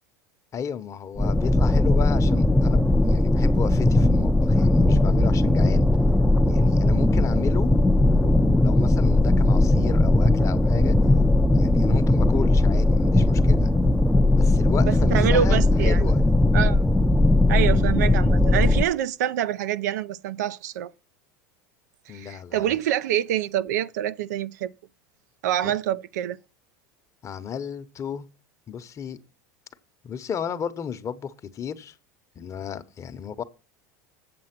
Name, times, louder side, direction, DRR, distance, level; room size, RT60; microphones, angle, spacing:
voice 1, 0.5-5.9 6.4-7.8 8.1-11.0 11.5-13.7 14.3-16.2 22.1-22.8 25.6-25.8 27.2-28.3 28.7-29.2 30.0-32.0 32.4-33.4, left 7 dB, 35° left, 0.9 m, -34 dB
sound 1, 1.2-18.8, left 2 dB, 5° left, 0.5 m, -19 dB
voice 2, 14.8-16.0 16.5-16.8 17.5-20.9 22.1-24.7 25.4-26.4, right 10 dB, 80° right, 0.5 m, -26 dB
7.7 x 7.5 x 5.9 m
hypercardioid pair, 95°, 9 cm